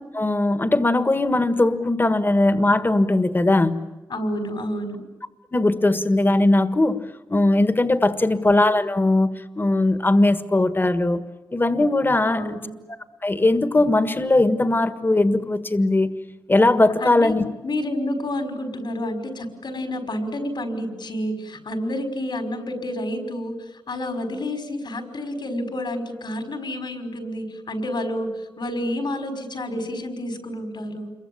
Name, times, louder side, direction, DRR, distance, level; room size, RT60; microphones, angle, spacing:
voice 1, 0.1-3.8 5.5-7.0 7.3-11.2 11.5-12.6 13.2-16.1 16.5-17.4, left 2 dB, 25° left, 11 dB, 1.6 m, -19 dB
voice 2, 4.1-5.0 12.3-12.8 17.0-31.1, left 1 dB, 75° left, 7 dB, 5.5 m, -29 dB
28.5 x 23.0 x 8.8 m, 1.1 s
wide cardioid pair, 130°, 8 cm